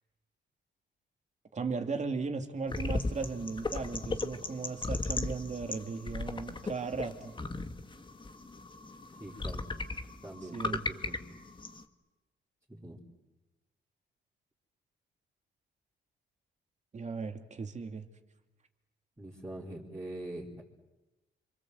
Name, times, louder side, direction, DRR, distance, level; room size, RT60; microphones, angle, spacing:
voice 1, 1.5-7.4 10.5-10.8 16.9-18.1, right 4 dB, 35° right, 5 dB, 2.5 m, -36 dB
sound 1, 2.7-11.8, left 3 dB, 25° left, 1.8 m, -37 dB
voice 2, 9.2-9.7 10.2-11.2 12.7-13.0 19.2-20.6, right 1 dB, 15° right, -6 dB, 4.2 m, -43 dB
27.5 x 24.5 x 8.0 m, 1.1 s
cardioid pair, 90°, 20 cm